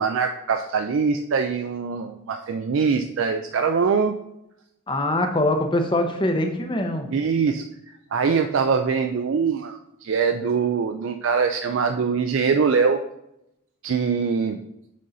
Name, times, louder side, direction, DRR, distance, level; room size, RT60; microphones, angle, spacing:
voice 1, 0.0-4.1 7.1-13.0 13.8-14.6, right 5 dB, 60° right, 7 dB, 0.4 m, -23 dB
voice 2, 4.9-7.1, left 1 dB, 20° left, 5 dB, 0.7 m, -23 dB
6.4 x 5.5 x 3.9 m, 0.83 s
head